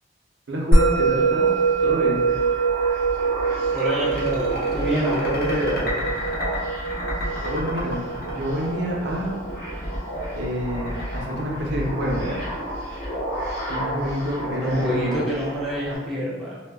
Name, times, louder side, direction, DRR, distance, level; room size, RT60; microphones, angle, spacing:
voice 1, 0.5-1.5 1.8-2.3 7.4-9.3 10.4-12.4 13.7-15.2, equal, 70° right, -2 dB, 0.5 m, -28 dB
Musical instrument, 0.7-11.3, right 4 dB, 85° left, 1.0 m, -24 dB
sound 1, 0.7-16.0, equal, 35° left, 1.0 m, -33 dB
sound 2, 3.7-12.3, left 1 dB, 50° left, 0.7 m, -32 dB
voice 2, 3.7-6.1 14.6-16.6, equal, ahead, -7 dB, 0.5 m, -26 dB
2.1 x 2.0 x 3.4 m, 1.3 s
head